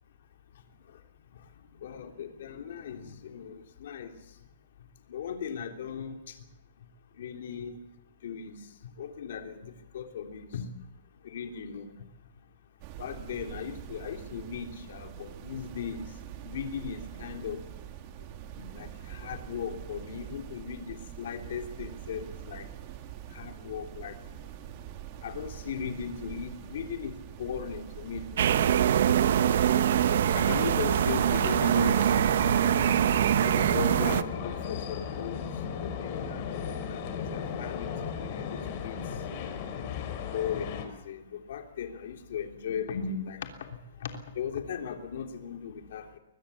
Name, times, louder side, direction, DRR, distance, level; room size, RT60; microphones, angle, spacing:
voice 1, 1.8-4.1 5.1-6.2 7.2-7.8 8.2-8.6 9.0-10.6 11.2-11.9 13.0-16.1 16.4-17.6 18.6-22.7 23.3-24.2 25.2-28.7 29.1-29.9 30.4-32.2 33.4-35.4 35.8-38.9 40.3-43.4 44.0-44.1 44.3-46.2, left 7 dB, 60° left, 5 dB, 3.3 m, -37 dB
sound 1, 12.8-30.7, right 12 dB, 35° right, 1.9 m, -44 dB
sound 2, 28.4-34.2, right 10 dB, 60° right, 1.0 m, -24 dB
sound 3, 30.0-40.9, left 7 dB, 35° left, 4.0 m, -36 dB
22.5 x 20.5 x 7.2 m, 0.90 s
hypercardioid pair, 165°, 0 cm